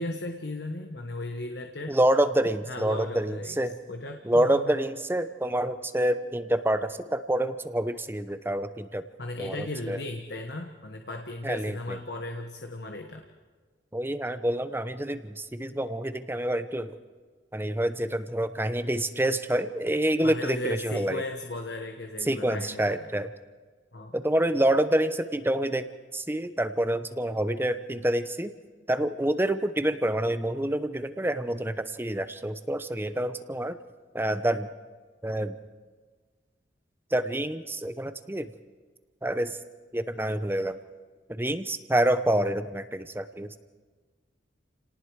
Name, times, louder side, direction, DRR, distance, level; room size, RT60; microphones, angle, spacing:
voice 1, 0.0-1.9 2.6-3.6 3.9-4.8 9.2-13.2 20.2-23.1 23.9-24.2, left 2 dB, 60° left, 4 dB, 1.3 m, -36 dB
voice 2, 1.9-3.8 4.2-9.0 9.4-10.0 11.4-12.0 13.9-16.9 17.5-21.2 22.2-23.3 24.1-25.8 26.1-28.5 28.9-33.8 34.1-34.7 35.2-35.5 37.1-38.5 39.2-39.6 39.9-40.8 41.3-43.6, right 1 dB, 10° right, 11 dB, 0.8 m, -27 dB
29.5 x 19.0 x 4.8 m, 1.4 s
head